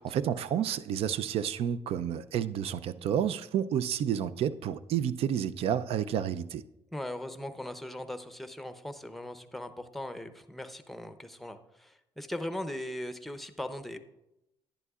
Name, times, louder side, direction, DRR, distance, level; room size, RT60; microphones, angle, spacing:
voice 1, 0.0-6.6, right 9 dB, 70° right, 0.4 m, -30 dB
voice 2, 6.9-14.0, left 1 dB, ahead, 0.7 m, -39 dB
11.0 x 10.0 x 2.4 m
cardioid pair, 90°, 10 cm